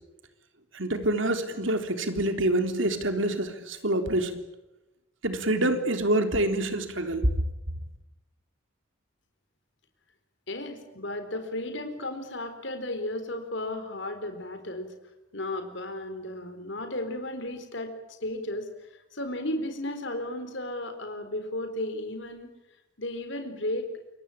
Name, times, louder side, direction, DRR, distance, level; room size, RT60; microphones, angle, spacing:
voice 1, 0.7-4.3 5.2-7.3, right 1 dB, 70° right, 7 dB, 3.7 m, -26 dB
voice 2, 10.5-14.9 15.3-17.9 18.2-18.7 19.1-22.5 23.0-23.9, left 1 dB, 60° left, 8 dB, 4.2 m, -34 dB
28.0 x 23.5 x 8.7 m, 0.97 s
head